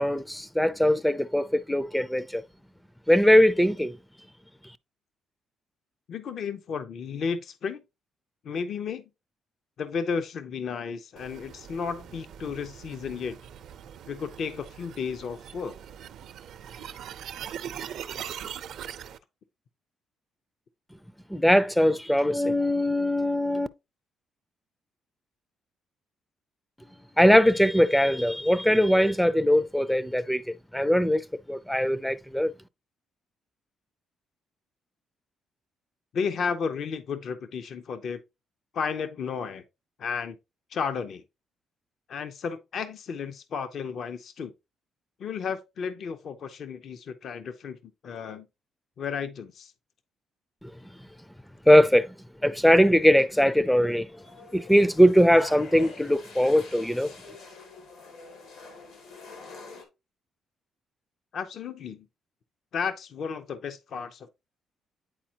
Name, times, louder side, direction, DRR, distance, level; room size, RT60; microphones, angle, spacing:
voice 1, 0.0-2.4 3.1-4.0 21.3-23.7 27.2-32.5 50.6-50.7 51.7-52.1 52.4-54.2 54.5-57.1, equal, 5° left, 0.4 m, -21 dB
voice 2, 6.1-7.8 8.4-9.1 9.8-13.4 14.1-15.7 36.1-38.2 38.7-39.6 40.0-40.4 40.7-41.2 42.1-44.5 45.2-48.5 49.0-49.7 61.3-62.1 62.7-64.3, left 6 dB, 65° left, 0.6 m, -33 dB
sound 1, 11.2-19.2, right 9 dB, 75° right, 0.6 m, -41 dB
sound 2, 54.2-59.8, left 3 dB, 85° left, 2.4 m, -45 dB
9.0 x 4.3 x 2.8 m
cardioid pair, 90°, 0 cm